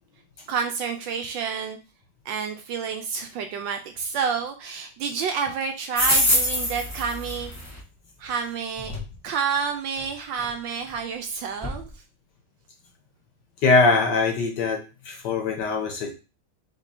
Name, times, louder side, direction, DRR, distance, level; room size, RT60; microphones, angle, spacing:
voice 1, 0.5-1.8 2.2-7.5 8.2-8.9 9.2-12.0, right 6 dB, 75° right, 5 dB, 1.2 m, -29 dB
sound 1, 5.9-7.8 8.8-9.0 10.0-10.1 10.4-10.5 10.9-11.0 11.6-11.8, left 1 dB, 15° left, 0.6 m, -24 dB
voice 2, 13.6-16.1, left 3 dB, 65° left, 3 dB, 1.2 m, -22 dB
3.5 x 3.5 x 4.1 m, 0.31 s
omnidirectional pair, 2.3 m